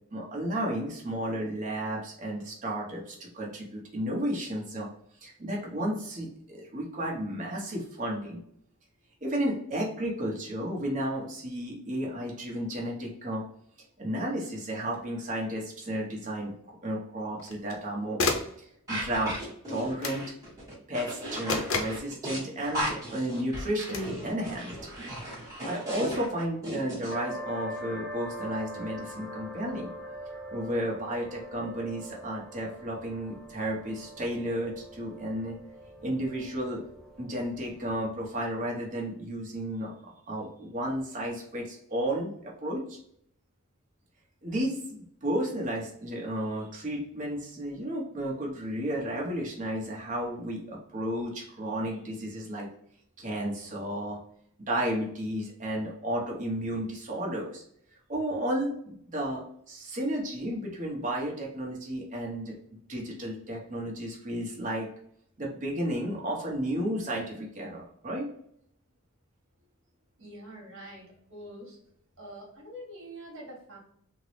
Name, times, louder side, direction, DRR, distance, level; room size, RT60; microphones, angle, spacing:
voice 1, 0.1-4.9 5.2-8.4 9.2-13.4 14.0-16.5 16.8-18.2 18.6-19.4 19.7-20.2 20.9-24.8 25.6-29.9 30.5-35.6 36.0-36.8 37.2-43.0 44.4-52.7 53.2-54.2 54.7-57.6 58.1-62.6 62.9-64.9 65.4-68.3, right 1 dB, 35° right, -2 dB, 0.9 m, -33 dB
sound 1, 14.9-15.0 17.4-17.8 18.2-18.6 20.0-20.3 21.5-22.0 23.9-24.1, left 3 dB, 60° left, 0.6 m, -30 dB
sound 2, 18.9-27.1, equal, 15° right, 1.1 m, -36 dB
sound 3, 27.1-38.4, equal, 5° left, 0.3 m, -43 dB
voice 2, 70.2-71.8 72.2-73.8, equal, 60° right, -1 dB, 1.3 m, -45 dB
3.6 x 2.0 x 3.1 m, 0.69 s
head